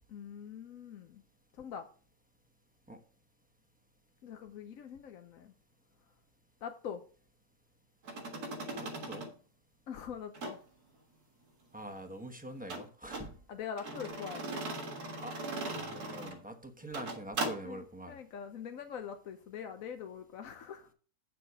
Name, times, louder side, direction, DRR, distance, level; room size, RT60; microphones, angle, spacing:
voice 1, 0.1-1.2 1.5-1.9 4.2-5.5 6.6-7.0 9.9-10.6 13.5-14.5 17.6-20.9, left 7 dB, 65° left, 7 dB, 1.1 m, -43 dB
sound 1, 8.0-9.3 10.3-10.6 12.7-13.3 13.8-16.4 16.8-17.6, right 2 dB, 85° right, 2.2 m, -39 dB
voice 2, 8.7-9.3 11.7-13.3 15.2-15.4 15.6-18.2, right 1 dB, 5° right, 5 dB, 1.0 m, -45 dB
8.6 x 6.7 x 4.8 m, 0.40 s
omnidirectional pair, 1.6 m